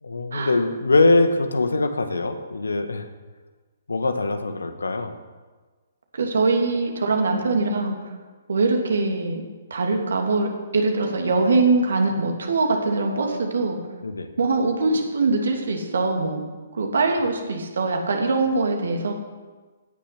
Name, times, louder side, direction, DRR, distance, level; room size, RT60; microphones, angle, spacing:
voice 1, 0.0-3.1 3.9-5.1 14.0-14.3, left 2 dB, 70° left, 7 dB, 1.6 m, -22 dB
voice 2, 6.1-8.1 8.5-9.4 9.7-13.8 14.4-16.4 16.7-19.1, right 3 dB, 60° right, 2 dB, 2.8 m, -22 dB
17.0 x 10.5 x 6.0 m, 1.3 s
figure-of-eight pair, 125°, 0 cm